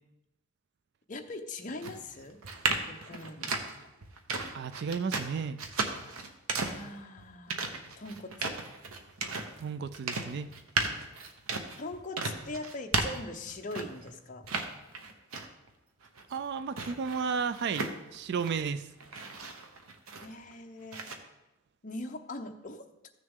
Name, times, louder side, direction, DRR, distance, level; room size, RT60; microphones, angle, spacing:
voice 1, 1.1-2.4 2.9-3.5 6.6-7.7 8.0-8.6 11.8-14.5 20.2-21.1 21.8-22.8, left 2 dB, 35° left, 4 dB, 0.7 m, -41 dB
sound 1, 1.8-14.1 14.4-15.7 16.0-18.7 19.0-20.5 20.9-21.1, right 3 dB, 80° right, 1.0 m, -35 dB
voice 2, 4.5-5.6 9.6-10.5 16.3-18.9, right 6 dB, 50° right, 13 dB, 0.3 m, -33 dB
14.5 x 6.5 x 3.6 m, 0.95 s
head